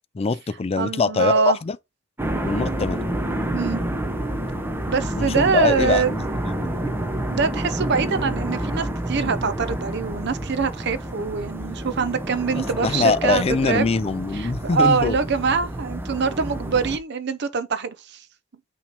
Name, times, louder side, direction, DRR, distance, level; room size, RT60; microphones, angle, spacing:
voice 1, 0.1-1.8 2.4-3.0 5.2-6.9 12.5-15.2, left 4 dB, 30° left, 0.4 m, -23 dB
voice 2, 0.8-1.6 3.5-3.8 4.9-6.1 7.3-13.9 14.3-18.2, right 5 dB, 55° right, 0.6 m, -24 dB
sound 1, 2.2-17.0, right 1 dB, 10° right, 0.8 m, -29 dB
5.9 x 3.1 x 5.1 m
head